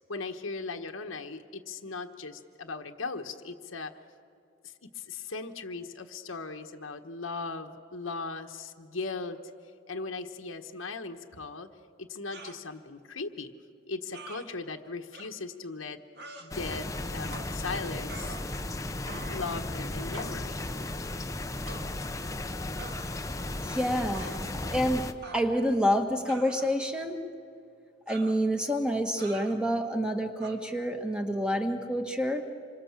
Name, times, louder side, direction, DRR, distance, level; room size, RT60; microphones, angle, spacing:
voice 1, 0.1-3.9 4.6-9.4 9.9-11.7 12.0-13.5 13.8-16.0 16.4-18.4 19.0-20.6, left 3 dB, 90° left, 4 dB, 1.3 m, -38 dB
sound 1, 12.3-12.6 14.1-14.5 15.1-15.3 16.2-16.5 17.3-17.6 18.1-18.7 19.1-19.5 20.1-20.4 21.7-21.9 22.8-23.1 24.1-24.4 25.2-25.8 26.3-26.9 28.1-28.4 29.2-29.6 30.4-30.6, right 3 dB, 55° right, 1.9 m, -45 dB
sound 2, 16.5-25.1, left 2 dB, 15° left, 0.8 m, -35 dB
voice 2, 23.6-27.2 28.1-32.4, equal, 5° right, 4 dB, 1.6 m, -28 dB
27.0 x 24.0 x 7.4 m, 2.3 s
head